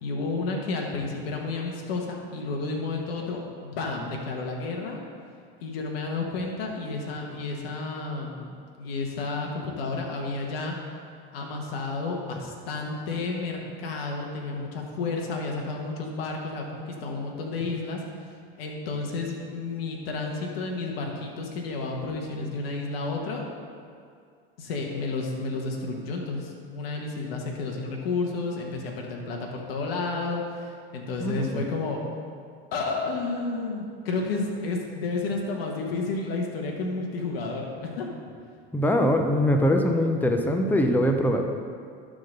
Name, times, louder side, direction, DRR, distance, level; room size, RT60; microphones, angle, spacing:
voice 1, 0.0-5.0 5.6-10.8 11.3-18.0 18.6-23.5 24.6-32.0 32.7-38.1, left 3 dB, 80° left, 0 dB, 1.4 m, -31 dB
voice 2, 31.2-31.7 38.7-41.4, equal, 5° left, 4 dB, 0.7 m, -22 dB
11.5 x 3.9 x 6.6 m, 2.3 s
supercardioid pair, 100°, 30 cm